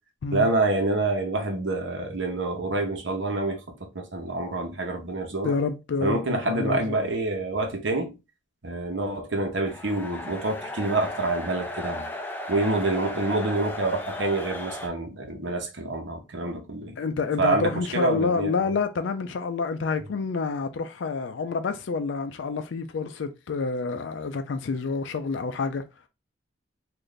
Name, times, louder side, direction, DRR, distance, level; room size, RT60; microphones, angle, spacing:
voice 1, 0.3-3.6 3.9-5.5 6.0-8.2 8.6-12.1 12.5-17.0 17.4-18.5, right 2 dB, 70° right, 0.9 m, -27 dB
voice 2, 5.4-7.0 17.0-25.8, left 4 dB, 75° left, 0.4 m, -28 dB
sound 1, 9.7-14.9, left 1 dB, 10° left, 0.4 m, -35 dB
3.2 x 2.5 x 3.8 m
head